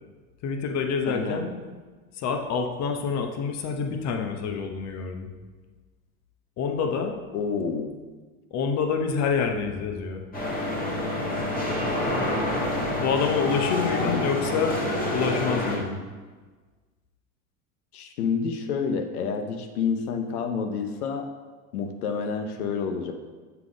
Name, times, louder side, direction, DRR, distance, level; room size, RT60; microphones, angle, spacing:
voice 1, 0.4-1.5 2.1-5.3 6.6-7.2 8.5-10.2 13.0-14.8 15.1-16.0, left 5 dB, 40° left, 5 dB, 0.9 m, -27 dB
voice 2, 1.1-1.4 7.3-8.0 14.0-14.2 17.9-21.3 21.7-23.1, left 5 dB, 85° left, 6 dB, 0.9 m, -29 dB
sound 1, 10.3-15.8, left 1 dB, 20° left, 1.6 m, -27 dB
8.1 x 3.9 x 5.0 m, 1.4 s
supercardioid pair, 110°, 43 cm